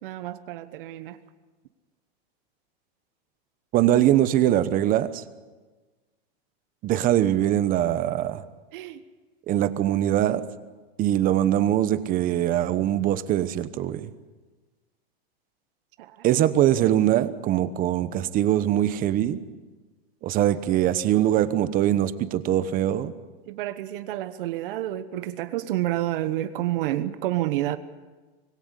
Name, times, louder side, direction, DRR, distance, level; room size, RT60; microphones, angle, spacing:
voice 1, 0.0-1.2 8.7-9.0 16.0-16.3 23.5-27.8, right 14 dB, 60° right, 12 dB, 1.1 m, -29 dB
voice 2, 3.7-5.2 6.8-8.4 9.5-10.4 11.0-14.1 16.2-19.4 20.2-23.1, right 12 dB, 25° right, 14 dB, 1.0 m, -22 dB
25.5 x 17.0 x 8.2 m, 1.3 s
supercardioid pair, 150°, 31 cm